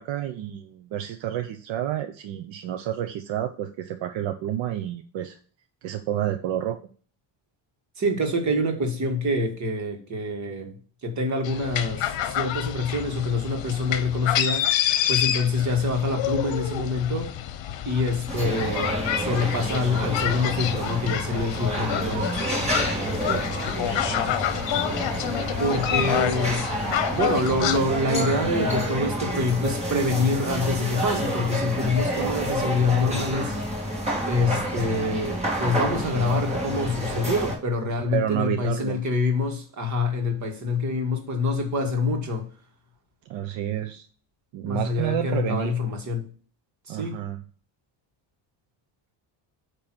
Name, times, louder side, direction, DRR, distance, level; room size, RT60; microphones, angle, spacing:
voice 1, 0.0-5.4 5.8-6.8 22.9-23.5 38.1-39.0 43.3-44.0 44.5-45.7 46.9-47.4, right 11 dB, 70° right, 0.8 m, -29 dB
voice 2, 8.0-10.8 11.0-14.7 15.1-17.3 17.8-22.3 25.6-26.7 27.1-33.6 34.2-42.5 44.6-46.3 46.9-47.2, left 2 dB, 35° right, 1.7 m, -26 dB
sound 1, 11.4-27.8, left 10 dB, 65° left, 1.0 m, -28 dB
sound 2, 18.3-37.5, right 1 dB, 15° right, 1.8 m, -29 dB
8.8 x 3.0 x 6.1 m
cardioid pair, 165°, 47 cm